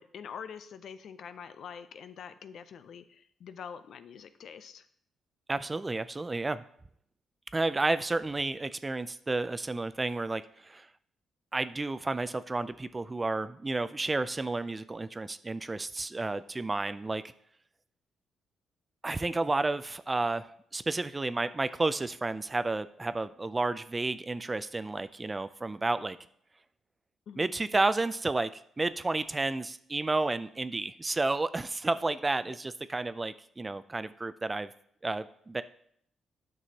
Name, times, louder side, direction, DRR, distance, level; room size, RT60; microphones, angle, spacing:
voice 1, 0.0-4.9 27.3-27.5 32.5-32.6, left 7 dB, 70° left, 11 dB, 0.5 m, -45 dB
voice 2, 5.5-6.6 7.5-10.9 11.5-17.2 19.0-26.2 27.4-34.7 35.0-35.6, right 2 dB, 20° right, 14 dB, 0.3 m, -31 dB
9.9 x 6.1 x 2.9 m, 0.67 s
cardioid pair, 90°, 0 cm